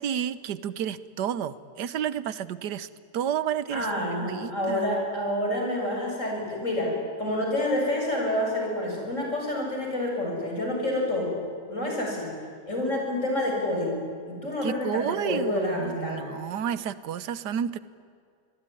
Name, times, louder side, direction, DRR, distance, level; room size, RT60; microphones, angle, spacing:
voice 1, 0.0-2.9 3.1-3.9 4.2-4.9 14.6-17.8, right 9 dB, 90° right, 16 dB, 1.5 m, -31 dB
voice 2, 3.7-6.9 7.2-11.4 11.7-12.3 12.7-14.0 14.3-16.2, left 1 dB, 45° left, 0 dB, 7.4 m, -28 dB
26.5 x 21.0 x 10.0 m, 2.3 s
omnidirectional pair, 1.7 m